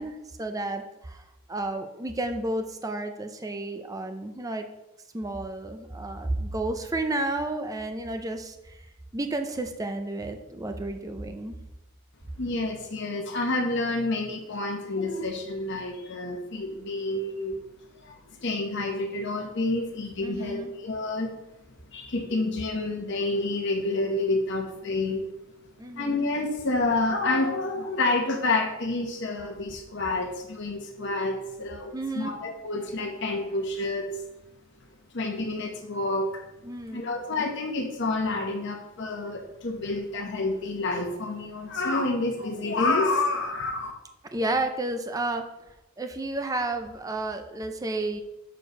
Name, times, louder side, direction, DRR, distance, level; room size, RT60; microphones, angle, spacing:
voice 1, 0.0-4.6 5.1-8.9 9.1-11.6 20.2-20.7 25.8-26.3 31.9-32.3 36.6-37.2 44.3-48.2, right 2 dB, 15° right, 6 dB, 0.5 m, -32 dB
voice 2, 12.4-17.6 18.0-21.3 21.9-25.2 25.9-34.2 35.1-36.4 36.9-43.9, left 2 dB, 55° left, 3 dB, 1.0 m, -28 dB
6.6 x 4.5 x 6.4 m, 0.93 s
head